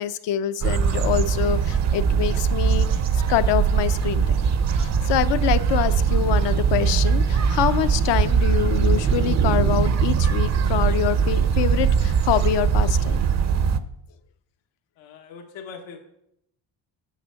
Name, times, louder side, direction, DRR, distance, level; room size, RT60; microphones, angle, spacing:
voice 1, 0.0-2.9 3.1-4.4 4.7-13.2, left 11 dB, 65° left, 12 dB, 0.7 m, -25 dB
sound 1, 0.6-13.8, right 6 dB, 35° right, 0.6 m, -21 dB
voice 2, 15.0-16.0, left 5 dB, 90° left, 3 dB, 1.5 m, -41 dB
9.2 x 6.8 x 6.4 m, 0.78 s
cardioid pair, 150°, 45 cm